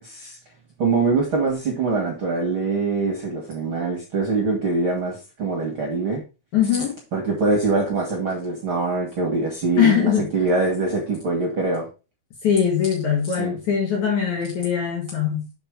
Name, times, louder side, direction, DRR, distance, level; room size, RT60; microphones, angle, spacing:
voice 1, 0.0-0.4 0.8-6.2 7.1-11.9 13.4-13.6, right 3 dB, 50° right, 1.7 m, -23 dB
voice 2, 6.5-7.0 9.8-10.3 12.4-15.5, left 8 dB, 55° left, 2.4 m, -21 dB
6.6 x 5.5 x 4.9 m
omnidirectional pair, 4.8 m